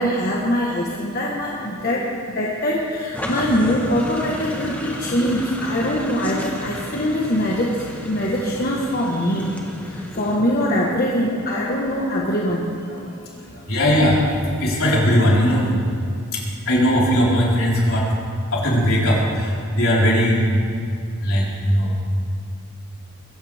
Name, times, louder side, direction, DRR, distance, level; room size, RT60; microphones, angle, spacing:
voice 1, 0.0-9.5 9.9-13.2 13.5-13.7, equal, 40° left, -3 dB, 1.5 m, -23 dB
sound 1, 3.1-10.4, equal, 5° left, 1.3 m, -33 dB
voice 2, 13.7-14.2 14.6-15.8 16.7-18.0 18.5-19.2 19.7-20.5 21.2-22.0, equal, 65° left, -6 dB, 4.6 m, -18 dB
23.0 x 16.0 x 3.6 m, 2.4 s
head